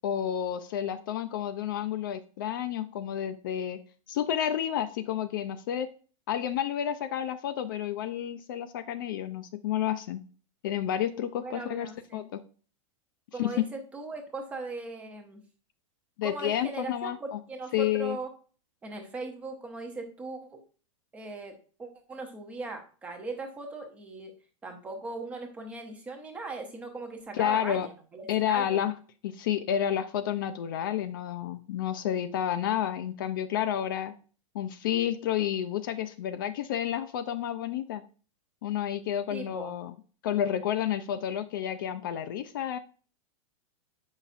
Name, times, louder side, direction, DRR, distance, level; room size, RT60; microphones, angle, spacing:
voice 1, 0.0-3.8 4.1-5.9 6.3-10.2 10.6-12.4 13.4-13.6 16.2-17.4 17.7-18.2 27.3-27.9 28.3-28.9 29.2-34.1 34.5-38.0 38.6-39.9 40.2-42.8, left 10 dB, 40° left, 10 dB, 0.4 m, -30 dB
voice 2, 11.4-12.2 13.3-15.4 16.2-18.3 18.8-20.6 21.1-24.3 24.6-28.8 39.3-39.7, right 3 dB, 10° right, 4 dB, 0.5 m, -39 dB
7.9 x 5.6 x 2.5 m, 0.39 s
supercardioid pair, 180°, 17 cm